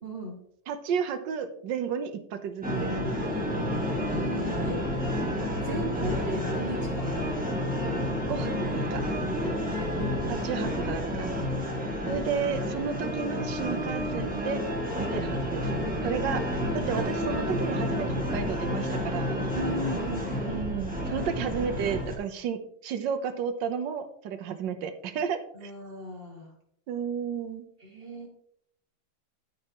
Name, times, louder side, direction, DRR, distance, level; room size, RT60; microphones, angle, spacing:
voice 1, 0.0-0.4 3.9-4.9 5.6-7.3 9.4-10.5 19.5-20.7 25.5-26.5 27.8-28.3, equal, 30° right, -2 dB, 2.7 m, -37 dB
voice 2, 0.7-2.9 4.6-4.7 8.3-9.0 10.3-11.4 12.1-14.6 15.0-15.7 16.0-16.4 16.7-19.4 20.5-25.7 26.9-27.6, right 7 dB, 75° right, 9 dB, 1.5 m, -32 dB
sound 1, 2.6-22.1, equal, 5° right, 1.5 m, -30 dB
13.0 x 5.5 x 3.0 m, 0.68 s
omnidirectional pair, 2.0 m